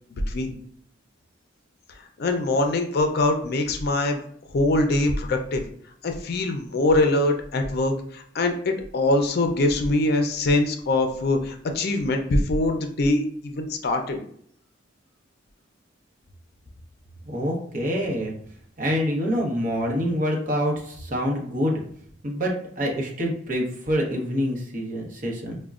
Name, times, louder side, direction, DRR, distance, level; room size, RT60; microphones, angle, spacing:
voice 1, 0.1-0.5 2.0-4.2 4.5-5.6 6.0-14.2, left 2 dB, 55° left, 5 dB, 0.5 m, -23 dB
voice 2, 17.2-18.3 18.8-21.8 22.2-25.6, equal, 45° right, -1 dB, 0.9 m, -26 dB
5.0 x 2.2 x 2.4 m, 0.63 s
head